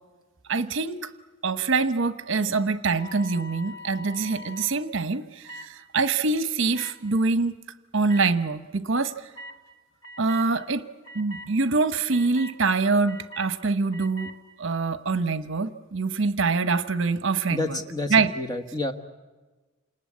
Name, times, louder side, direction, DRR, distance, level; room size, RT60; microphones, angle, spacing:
voice 1, 0.5-1.1 1.4-7.6 7.9-9.1 10.2-10.9 11.1-14.3 14.6-17.8 18.1-18.3, right 4 dB, 60° right, 12 dB, 0.9 m, -25 dB
sound 1, 2.9-4.7 5.5-5.7 6.7-6.9 8.1-8.2 9.4-9.6 10.0-10.5 11.0-11.5 12.1-12.5 13.1-13.5 13.9-14.3, left 1 dB, 70° left, 2.7 m, -42 dB
voice 2, 17.5-18.9, left 2 dB, 20° left, 6 dB, 1.3 m, -29 dB
28.0 x 19.5 x 8.5 m, 1.3 s
head